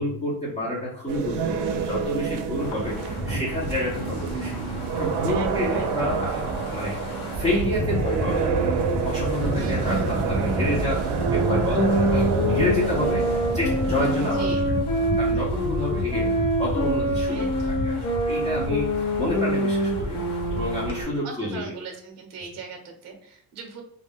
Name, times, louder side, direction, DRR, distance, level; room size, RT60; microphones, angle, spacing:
voice 1, 0.0-6.4 6.7-8.7 9.0-14.6 15.0-16.3 16.6-20.2 20.5-21.7, left 1 dB, 15° left, -6 dB, 0.6 m, -29 dB
sound 1, 1.1-14.3, right 6 dB, 80° right, 0.5 m, -28 dB
Wind, 2.6-21.0, equal, 80° left, 1.0 m, -31 dB
voice 2, 5.3-6.1 9.5-10.1 14.2-14.7 17.3-17.9 21.2-23.8, right 5 dB, 40° right, 3 dB, 0.7 m, -39 dB
sound 2, 11.1-21.2, equal, 55° left, 0.8 m, -26 dB
2.4 x 2.1 x 3.4 m, 0.70 s
cardioid pair, 135°, 40 cm